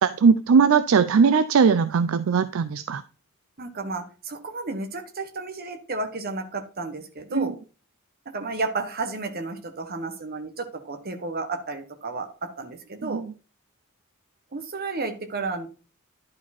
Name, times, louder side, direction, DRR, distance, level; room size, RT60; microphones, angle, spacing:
voice 1, 0.0-3.0 7.3-7.5 13.0-13.2, right 5 dB, 65° right, 14 dB, 0.4 m, -19 dB
voice 2, 3.6-7.6 8.3-12.3 12.6-13.2 14.5-15.7, right 3 dB, 45° right, 6 dB, 1.2 m, -32 dB
11.0 x 4.8 x 4.2 m, 0.35 s
head